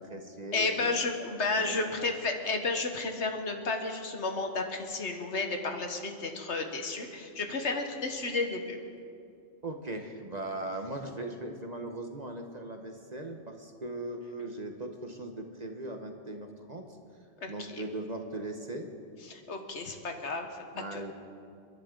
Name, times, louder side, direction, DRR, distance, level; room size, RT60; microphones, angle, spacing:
voice 1, 0.0-1.0 1.6-2.1 9.6-16.9 17.5-18.9 20.7-21.1, right 2 dB, 35° right, 4 dB, 1.0 m, -39 dB
voice 2, 0.5-8.8 17.4-17.8 19.3-20.5 20.9-21.1, left 3 dB, 65° left, 4 dB, 1.5 m, -32 dB
29.5 x 11.0 x 3.8 m, 2.4 s
omnidirectional pair, 1.3 m